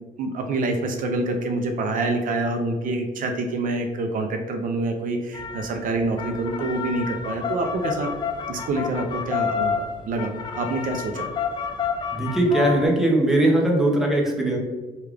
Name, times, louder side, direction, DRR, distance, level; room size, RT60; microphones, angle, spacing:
voice 1, 0.2-8.1 8.5-10.3 10.6-11.2, right 2 dB, 55° right, 4 dB, 0.4 m, -26 dB
paddock sounds, 5.3-12.9, left 7 dB, 25° left, 0.4 m, -30 dB
voice 2, 12.1-14.6, right 1 dB, ahead, -1 dB, 0.7 m, -20 dB
3.3 x 2.3 x 3.4 m, 1.3 s
cardioid pair, 110°, 17 cm